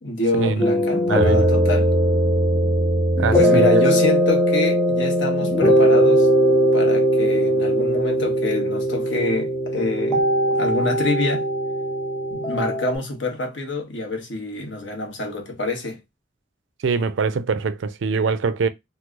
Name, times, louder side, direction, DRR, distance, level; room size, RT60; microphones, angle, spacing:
voice 1, 0.0-1.9 3.3-6.3 6.7-11.5 12.3-16.0, left 2 dB, 70° left, 1.0 m, -26 dB
sound 1, 0.6-12.9, equal, 15° left, 0.8 m, -19 dB
voice 2, 1.1-1.5 3.2-3.8 16.8-18.7, right 4 dB, 75° right, 0.4 m, -23 dB
3.0 x 2.0 x 3.5 m
head